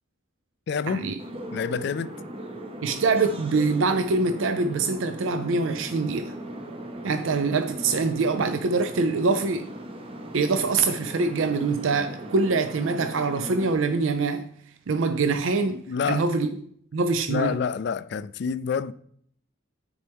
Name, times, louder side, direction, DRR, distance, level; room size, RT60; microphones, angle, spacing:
voice 1, 0.7-1.1 1.5-2.1 15.9-16.3 17.3-18.9, left 6 dB, 55° left, 0.3 m, -27 dB
sound 1, 1.2-13.7, right 1 dB, 25° right, 0.7 m, -38 dB
voice 2, 2.8-6.3 7.0-9.7 10.3-14.5 14.9-15.8 16.1-16.5 16.9-17.5, right 4 dB, 75° right, 0.5 m, -24 dB
9.7 x 4.4 x 3.5 m
head